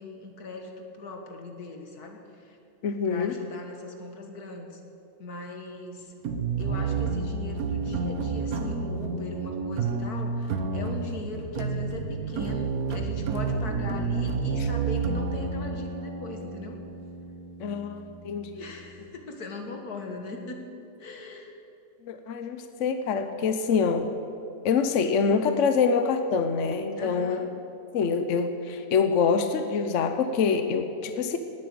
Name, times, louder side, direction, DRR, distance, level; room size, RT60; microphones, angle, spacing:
voice 1, 0.0-2.6 3.1-4.8 5.2-6.1 6.6-16.8 18.6-20.6 21.0-21.5 27.0-27.5, left 3 dB, 80° left, 3 dB, 2.1 m, -39 dB
voice 2, 2.8-3.4 14.6-14.7 17.6-18.7 22.0-24.1 24.6-27.5 27.9-31.4, left 5 dB, 60° left, 8 dB, 1.1 m, -25 dB
sound 1, 6.3-19.1, right 4 dB, 70° right, 1.4 m, -30 dB
18.0 x 8.8 x 7.8 m, 2.7 s
omnidirectional pair, 1.6 m